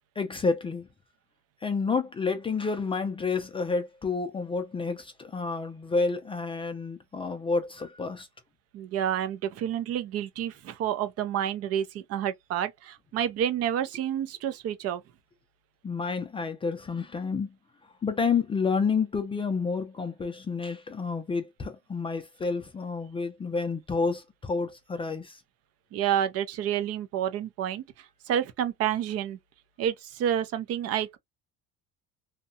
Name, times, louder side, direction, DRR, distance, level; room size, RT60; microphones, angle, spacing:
voice 1, 0.2-0.9 1.6-8.3 15.8-17.5 18.0-25.4, left 4 dB, 20° left, 0.3 m, -29 dB
voice 2, 8.7-15.0 25.9-27.8 28.3-29.4 29.8-31.2, right 10 dB, 50° right, 0.5 m, -29 dB
2.7 x 2.2 x 2.5 m
cardioid pair, 125°, 31 cm